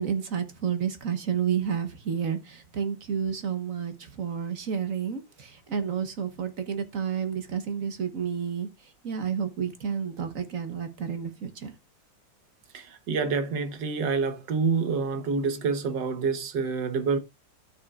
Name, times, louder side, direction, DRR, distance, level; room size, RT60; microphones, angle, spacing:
voice 1, 0.0-11.7, right 7 dB, 50° right, 1.3 m, -30 dB
voice 2, 12.7-17.2, right 5 dB, 70° right, 1.7 m, -27 dB
13.5 x 5.9 x 2.4 m
omnidirectional pair, 2.0 m